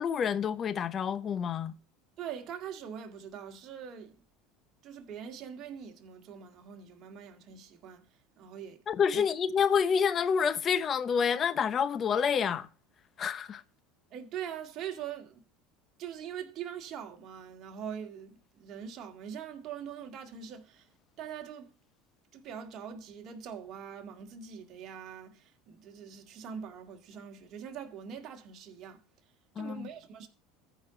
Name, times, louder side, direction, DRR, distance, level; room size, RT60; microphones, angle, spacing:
voice 1, 0.0-1.7 8.9-12.7 13.2-13.6 29.6-29.9, left 7 dB, 40° left, 0.7 m, -28 dB
voice 2, 2.2-4.2 4.8-8.0 8.4-8.8 9.1-9.2 14.1-15.4 16.0-20.9 21.2-21.7 22.3-29.0 29.6-30.3, right 8 dB, 50° right, 1.9 m, -43 dB
14.5 x 5.2 x 3.9 m
hypercardioid pair, 90°, 0 cm